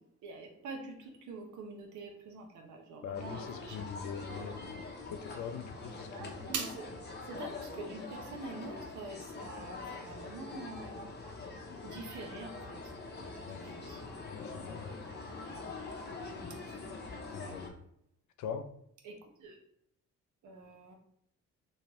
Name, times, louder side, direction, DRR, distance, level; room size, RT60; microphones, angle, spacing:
voice 1, 0.2-3.8 4.3-4.6 6.2-6.8 7.3-11.0 11.8-12.9 13.2-14.0 17.4-17.5 19.0-19.6 20.4-21.0, right 4 dB, 75° right, 2 dB, 0.8 m, -45 dB
voice 2, 3.0-4.8 5.1-6.3 13.5-13.6 14.3-14.9 17.3-17.7 18.4-18.7, left 7 dB, 70° left, 9 dB, 0.5 m, -42 dB
sound 1, 3.1-17.7, left 3 dB, 35° left, 0.7 m, -44 dB
3.2 x 2.7 x 2.8 m, 0.73 s
cardioid pair, 90°, 30 cm